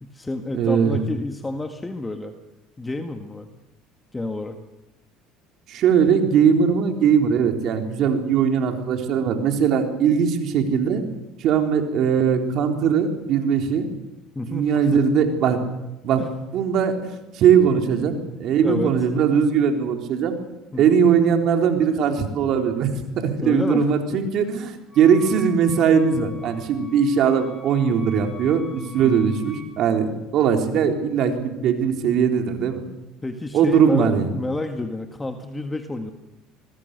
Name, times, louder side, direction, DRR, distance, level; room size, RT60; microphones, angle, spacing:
voice 1, 0.0-2.3 2.8-3.5 4.1-4.6 14.4-15.0 16.2-16.3 18.6-18.9 20.7-21.0 23.4-24.2 29.0-29.2 33.2-36.1, left 2 dB, 15° left, 6 dB, 1.8 m, -29 dB
voice 2, 0.5-1.0 5.7-11.0 11.4-13.9 14.5-15.6 16.0-16.2 16.5-20.4 20.8-32.8 33.5-34.3, right 7 dB, 55° right, 5 dB, 3.7 m, -20 dB
Wind instrument woodwind instrument, 24.9-29.8, left 2 dB, 5° right, 7.6 m, -44 dB
26.0 x 20.5 x 6.8 m, 1.0 s
supercardioid pair, 100°, 0 cm